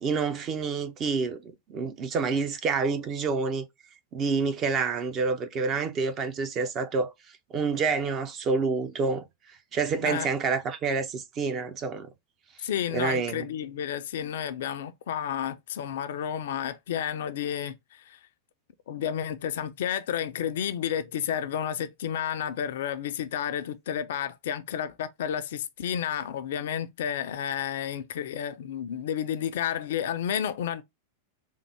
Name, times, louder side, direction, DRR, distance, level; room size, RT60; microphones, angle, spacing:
voice 1, 0.0-3.6 4.1-7.1 7.5-9.3 9.7-12.1 12.6-12.7 12.9-13.5, right 4 dB, 30° right, 0.6 m, -28 dB
voice 2, 10.0-10.3 12.6-18.2 18.9-30.8, left 9 dB, 55° left, 0.4 m, -31 dB
3.6 x 2.0 x 3.1 m
figure-of-eight pair, 90°, 0 cm